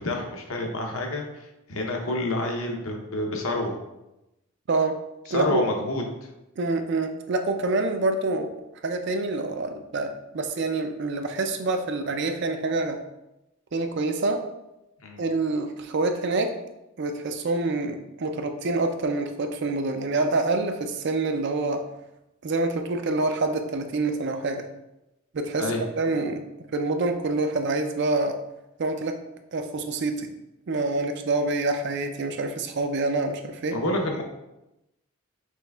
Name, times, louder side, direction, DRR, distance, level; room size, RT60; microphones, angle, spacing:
voice 1, 0.0-3.8 5.3-6.3 15.0-15.2 25.6-25.8 33.7-34.2, left 1 dB, 80° left, 1 dB, 0.8 m, -28 dB
voice 2, 5.3-5.6 6.6-8.5 8.8-13.0 13.7-14.4 15.2-16.5 17.0-21.8 22.4-24.7 25.3-26.4 26.7-28.4 28.8-29.2 29.5-30.3 30.7-33.8, right 2 dB, 55° right, 6 dB, 0.4 m, -26 dB
5.9 x 3.3 x 2.3 m, 0.92 s
head